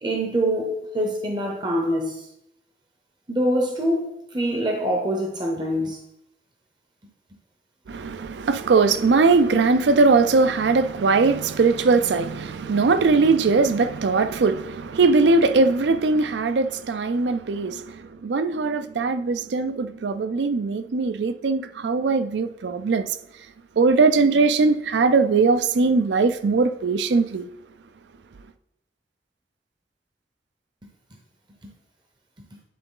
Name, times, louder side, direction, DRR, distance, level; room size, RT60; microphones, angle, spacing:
voice 1, 0.0-2.3 3.3-6.0, equal, 25° right, 0.6 m, -25 dB
voice 2, 7.9-23.2 23.8-27.5, right 4 dB, 85° right, 0.4 m, -20 dB
9.5 x 3.8 x 3.8 m
head